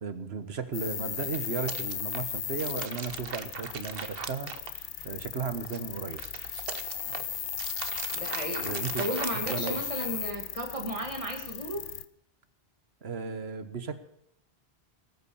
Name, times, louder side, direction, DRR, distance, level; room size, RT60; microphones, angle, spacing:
voice 1, 0.0-4.6 5.0-6.2 8.6-9.0 9.5-9.8 13.0-14.0, right 5 dB, 80° right, 11 dB, 1.5 m, -35 dB
sound 1, 0.7-12.1, left 9 dB, 80° left, 1.0 m, -36 dB
sound 2, 1.1-5.2 5.6-10.2, right 6 dB, 65° right, 1.1 m, -40 dB
voice 2, 8.1-11.8, right 1 dB, 30° right, 2 dB, 2.1 m, -34 dB
19.0 x 8.2 x 7.0 m, 0.75 s
omnidirectional pair, 1.0 m